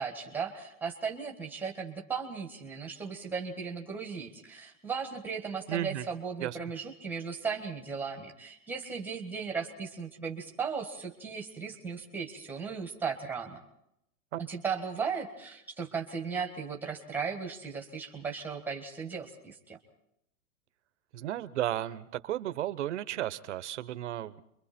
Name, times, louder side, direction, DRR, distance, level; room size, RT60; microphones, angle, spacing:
voice 1, 0.0-13.6 14.5-19.8, right 5 dB, 5° right, 3 dB, 1.6 m, -36 dB
voice 2, 5.7-6.1 6.4-6.6 14.3-14.4 21.1-24.4, right 13 dB, 45° right, 14 dB, 1.0 m, -34 dB
29.0 x 23.5 x 4.4 m, 0.79 s
hypercardioid pair, 155°, 47 cm